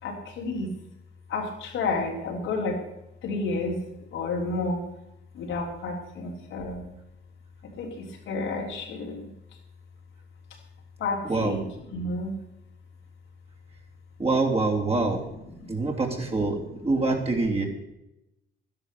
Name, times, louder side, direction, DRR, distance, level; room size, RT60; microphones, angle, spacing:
voice 1, 0.0-0.8 1.3-2.8 3.2-3.8 4.1-4.8 5.3-6.9 7.6-9.3 11.0-11.6 11.9-12.4 15.6-15.8, left 3 dB, 85° left, 0 dB, 3.3 m, -31 dB
voice 2, 11.2-11.6 14.2-15.2 15.7-17.7, right 3 dB, 30° right, 0 dB, 3.2 m, -25 dB
12.5 x 10.5 x 6.7 m, 0.90 s
cardioid pair, 90°, 20 cm